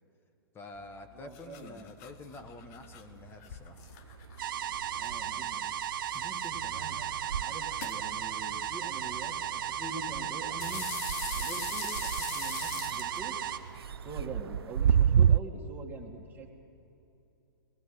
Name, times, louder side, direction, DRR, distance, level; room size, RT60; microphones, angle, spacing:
voice 1, 0.5-3.8 6.1-6.2, left 2 dB, 20° left, 7 dB, 1.2 m, -48 dB
sound 1, 0.7-15.0, left 9 dB, 45° left, 1.3 m, -45 dB
voice 2, 1.1-1.8 4.9-5.7 6.2-7.0 7.4-10.9 11.3-13.5 14.0-16.5, right 2 dB, 15° right, -2 dB, 2.7 m, -44 dB
sound 2, 2.1-3.4 3.7-15.4, right 8 dB, 85° right, 0.4 m, -33 dB
sound 3, 4.4-13.6, right 10 dB, 60° right, 1.1 m, -35 dB
19.0 x 17.5 x 8.1 m, 2.8 s
hypercardioid pair, 130°, 13 cm